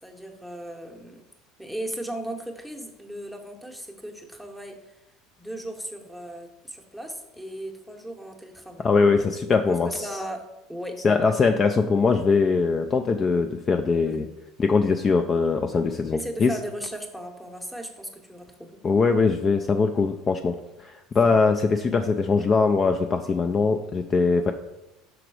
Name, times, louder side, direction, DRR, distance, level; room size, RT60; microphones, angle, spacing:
voice 1, 0.0-1.2 1.6-5.0 5.4-8.9 9.2-9.3 9.7-10.4 10.7-11.2 14.1-14.3 16.1-18.8 21.2-21.4, right 1 dB, ahead, 3 dB, 0.8 m, -37 dB
voice 2, 8.8-10.1 11.0-14.2 14.6-16.6 18.8-24.5, left 4 dB, 30° left, 5 dB, 0.3 m, -22 dB
6.0 x 3.9 x 4.7 m, 0.96 s
cardioid pair, 130°, 0 cm